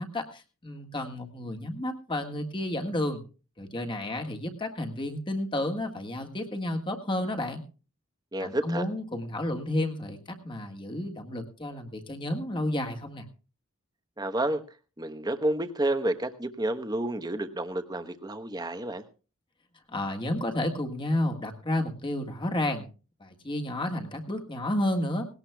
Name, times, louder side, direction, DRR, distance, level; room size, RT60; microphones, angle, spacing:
voice 1, 0.0-3.2 3.6-7.6 8.4-10.2 10.4-13.2 19.9-22.9 23.2-25.3, left 1 dB, 25° left, 3 dB, 1.6 m, -31 dB
voice 2, 8.3-8.8 14.2-14.6 15.0-19.0, right 1 dB, 20° right, 9 dB, 1.0 m, -30 dB
18.5 x 18.0 x 2.3 m, 0.35 s
head